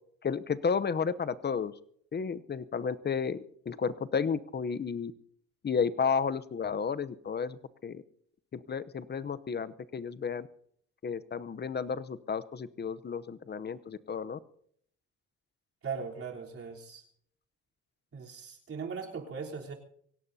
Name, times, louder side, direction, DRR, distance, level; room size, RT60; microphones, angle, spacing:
voice 1, 0.2-1.7 2.1-5.1 5.6-8.0 8.5-10.5 11.0-14.4, left 6 dB, 35° left, 15 dB, 0.8 m, -32 dB
voice 2, 15.8-17.0 18.1-19.7, right 5 dB, 50° right, -1 dB, 3.7 m, -39 dB
24.0 x 17.0 x 2.8 m, 0.65 s
cardioid pair, 90°, 30 cm